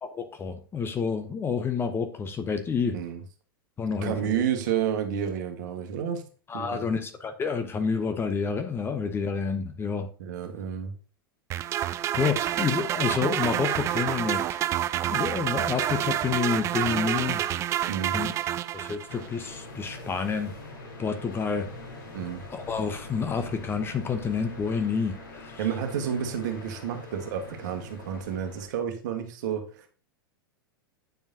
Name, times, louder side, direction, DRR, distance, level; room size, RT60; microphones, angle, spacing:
voice 1, 0.0-2.9 3.8-4.4 6.5-10.1 12.2-14.6 15.1-17.4 18.1-18.3 18.7-20.5 21.0-21.7 22.5-25.7, left 5 dB, 20° left, 8 dB, 0.8 m, -29 dB
voice 2, 4.0-6.2 6.5-7.0 10.2-10.9 17.9-18.2 22.1-22.4 25.6-29.9, right 8 dB, 50° right, 5 dB, 1.5 m, -30 dB
sound 1, 11.5-19.3, right 12 dB, 25° right, 0.3 m, -28 dB
sound 2, 19.1-28.7, left 2 dB, 60° left, 3.5 m, -43 dB
9.3 x 7.0 x 2.8 m, 0.39 s
figure-of-eight pair, 90°, 12 cm